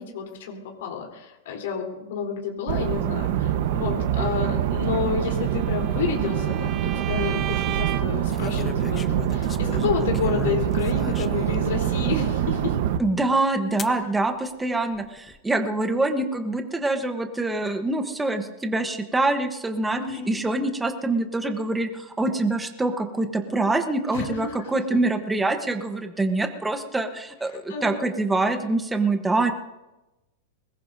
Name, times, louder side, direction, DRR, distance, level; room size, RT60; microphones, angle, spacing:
voice 1, 0.0-12.8 19.9-20.4 24.1-24.7 27.7-28.0, left 7 dB, 70° left, -1 dB, 3.8 m, -30 dB
sound 1, 2.7-13.0, right 10 dB, 55° right, 1.1 m, -25 dB
Bowed string instrument, 5.2-8.3, right 13 dB, 30° right, 0.7 m, -35 dB
sound 2, 6.6-7.1 8.3-11.7 12.3-12.4 13.8-14.0 14.9-15.4, left 5 dB, 15° left, 0.7 m, -36 dB
voice 2, 13.0-20.0 20.3-29.5, right 2 dB, 5° right, 6 dB, 1.1 m, -25 dB
23.0 x 20.5 x 2.7 m, 1.0 s
supercardioid pair, 160°, 0 cm